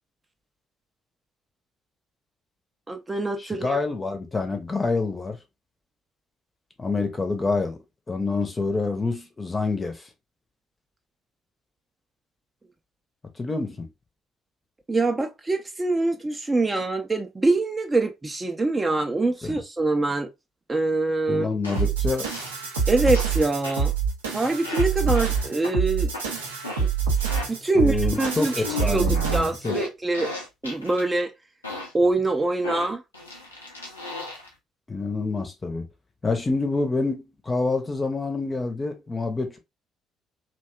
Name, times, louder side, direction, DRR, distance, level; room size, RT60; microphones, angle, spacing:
voice 1, 2.9-3.8 14.9-20.3 20.7-21.5 22.9-23.9 24.3-26.1 26.8-26.9 27.5-30.3 30.6-31.3 31.9-33.0, right 2 dB, 20° right, 0.4 m, -24 dB
voice 2, 3.4-5.4 6.8-7.8 8.1-10.1 13.4-13.9 19.4-19.6 21.3-22.3 27.7-29.8 34.9-35.9 36.2-39.6, left 3 dB, 25° left, 0.6 m, -27 dB
sound 1, 21.6-21.8 22.1-22.5 23.1-23.4 23.6-23.9 24.6-24.9 25.1-25.3 25.6-25.7 26.1-26.3 26.6-26.9 27.2-27.5 28.1-28.3 28.6-31.0 31.6-31.9 32.6-34.5, left 2 dB, 85° left, 0.5 m, -35 dB
sound 2, 21.7-29.7, right 6 dB, 75° right, 0.5 m, -26 dB
2.7 x 2.2 x 2.2 m
figure-of-eight pair, 45°, 0 cm